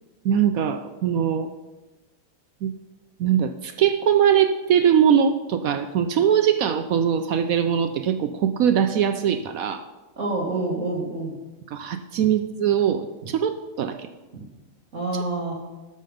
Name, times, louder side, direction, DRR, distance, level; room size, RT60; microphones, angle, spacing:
voice 1, 0.2-1.5 2.6-2.7 3.2-9.8 11.7-14.1, right 8 dB, 70° right, 8 dB, 0.9 m, -21 dB
voice 2, 10.2-11.4 12.2-12.3 13.2-13.3 14.3-14.5 14.9-15.5, right 2 dB, 45° right, -3 dB, 1.8 m, -28 dB
12.0 x 6.6 x 5.1 m, 1.1 s
omnidirectional pair, 1.8 m